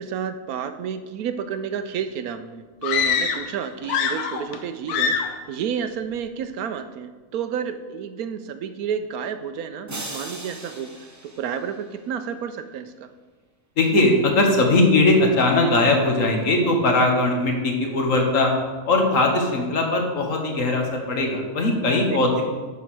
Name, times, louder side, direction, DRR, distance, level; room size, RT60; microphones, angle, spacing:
voice 1, 0.0-13.1 22.1-22.2, right 7 dB, 75° right, 10 dB, 1.0 m, -31 dB
sound 1, 2.8-3.6 3.8-4.6 4.9-5.4, left 6 dB, 80° left, 1.2 m, -24 dB
sound 2, 9.9-12.2, right 2 dB, 20° right, 0.5 m, -38 dB
voice 2, 13.8-18.5 18.9-22.4, left 2 dB, 60° left, 2 dB, 1.6 m, -20 dB
9.2 x 4.8 x 6.1 m, 1.4 s
omnidirectional pair, 1.6 m